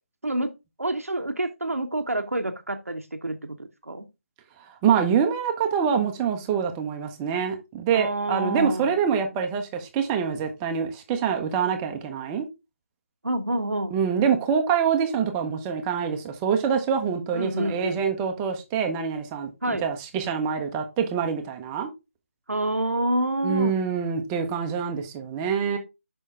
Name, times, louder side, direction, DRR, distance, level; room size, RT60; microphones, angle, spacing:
voice 1, 0.2-0.5 0.8-4.1 7.9-8.9 13.2-13.9 17.3-18.0 19.6-19.9 22.5-23.8, right 1 dB, 85° right, 0.9 m, -27 dB
voice 2, 4.6-12.5 13.9-21.9 23.4-25.8, right 7 dB, 15° right, 0.7 m, -25 dB
6.3 x 5.5 x 3.5 m
figure-of-eight pair, 155°, 8 cm